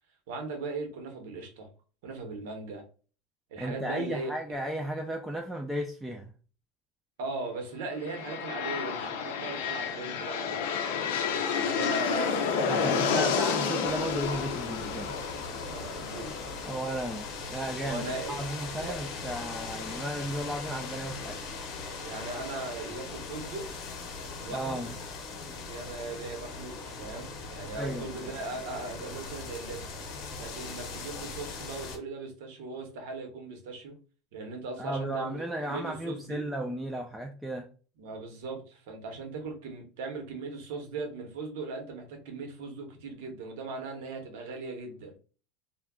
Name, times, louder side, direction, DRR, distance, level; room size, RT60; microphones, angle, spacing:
voice 1, 0.3-1.7 2.0-2.8 3.5-4.3 7.2-10.6 11.2-12.9 15.7-16.5 17.8-18.4 18.8-19.0 22.0-23.7 24.4-24.9 25.7-29.9 30.4-34.0 34.3-36.5 38.0-45.2, right 3 dB, 75° right, 0.9 m, -38 dB
voice 2, 3.6-6.3 12.7-15.2 16.6-18.0 18.3-21.4 24.5-24.9 27.7-28.3 34.8-37.7, right 1 dB, 5° right, 0.3 m, -34 dB
sound 1, 7.9-17.7, left 6 dB, 85° left, 0.4 m, -31 dB
sound 2, 13.8-32.0, left 4 dB, 50° left, 0.7 m, -40 dB
2.2 x 2.2 x 3.5 m
supercardioid pair, 150°, 0 cm